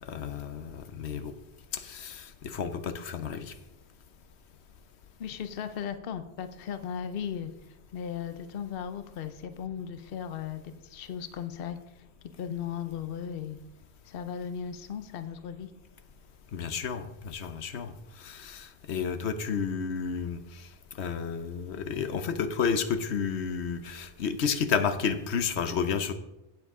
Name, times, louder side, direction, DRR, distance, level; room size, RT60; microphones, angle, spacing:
voice 1, 0.0-1.3 1.7-3.5 16.5-17.9 18.2-20.6 21.0-26.1, left 6 dB, 90° left, 10 dB, 1.1 m, -31 dB
voice 2, 5.2-7.5 7.9-11.8 12.4-13.6 14.0-15.7, left 8 dB, 65° left, 10 dB, 0.9 m, -36 dB
16.0 x 7.4 x 3.7 m, 0.91 s
omnidirectional pair, 1.1 m